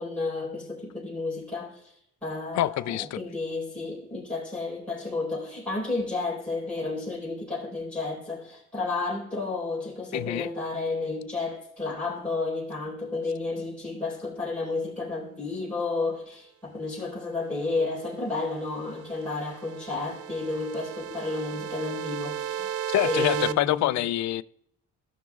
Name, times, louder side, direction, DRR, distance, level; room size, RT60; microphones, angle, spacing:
voice 1, 0.0-1.9 2.2-22.7 23.0-24.0, left 3 dB, 5° left, 4.0 m, -32 dB
voice 2, 2.5-3.2 10.1-10.5 22.9-24.4, left 14 dB, 65° left, 0.5 m, -26 dB
sound 1, 18.6-23.5, right 9 dB, 50° right, 0.4 m, -34 dB
16.5 x 6.2 x 2.4 m
cardioid pair, 90°, 30 cm